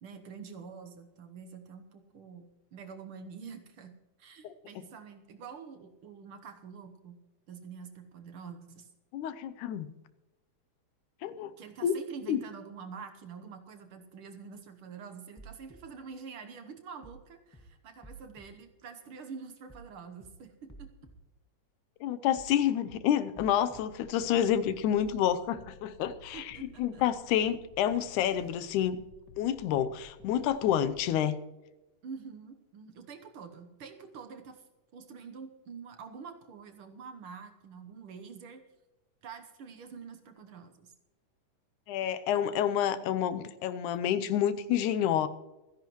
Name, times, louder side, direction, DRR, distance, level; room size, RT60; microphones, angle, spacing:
voice 1, 0.0-3.9 4.2-7.2 7.5-8.9 11.6-20.9 26.3-27.0 32.0-34.7 34.9-38.6 39.2-40.9, right 5 dB, 65° right, 6 dB, 1.4 m, -46 dB
voice 2, 9.1-9.9 11.2-11.5 11.8-12.0 12.3-12.4 22.0-29.0 29.4-31.4 41.9-45.3, left 10 dB, 85° left, 12 dB, 2.2 m, -29 dB
sound 1, 15.4-15.8 17.0-17.2 17.5-17.6 18.0-18.5 19.7-19.9 20.2-20.3 20.7-21.1 22.4-22.6 22.9-23.0 23.4-23.8 25.0-25.2 25.5-25.6, right 3 dB, 10° left, 0.8 m, -51 dB
sound 2, 23.7-31.1, left 3 dB, 45° left, 1.6 m, -55 dB
26.5 x 10.5 x 3.1 m, 1.1 s
omnidirectional pair, 3.5 m